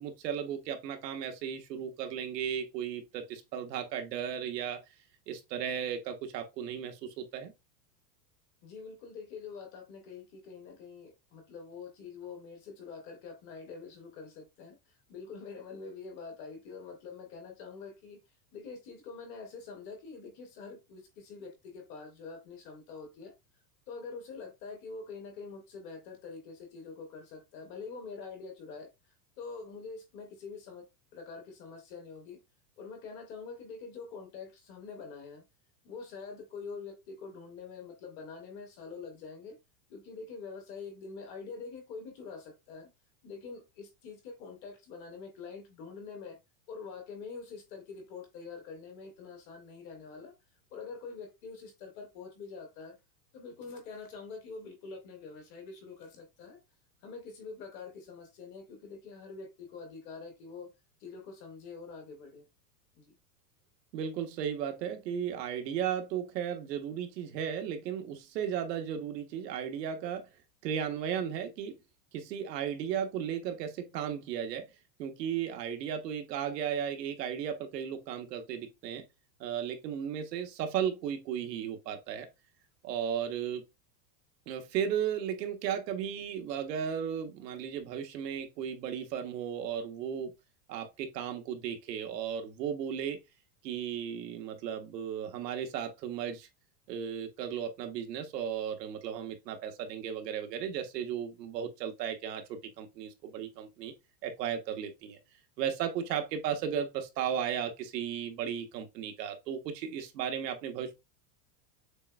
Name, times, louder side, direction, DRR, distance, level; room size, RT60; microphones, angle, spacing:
voice 1, 0.0-4.8 5.3-7.5 63.9-70.3 70.6-71.8 72.1-74.7 75.0-79.0 79.4-82.3 82.8-83.6 84.5-90.3 90.7-93.2 93.6-96.5 96.9-103.9 104.2-105.2 105.6-111.0, right 8 dB, 75° right, 1.1 m, -35 dB
voice 2, 8.6-18.2 18.5-23.3 23.9-30.9 31.1-32.4 32.8-35.4 35.8-39.6 39.9-42.9 43.2-46.4 46.7-50.3 50.7-53.0 53.3-56.6 57.0-60.7 61.0-62.5 62.9-63.1, left 4 dB, 25° left, 0.6 m, -45 dB
6.6 x 2.5 x 2.3 m
supercardioid pair, 170°, 49 cm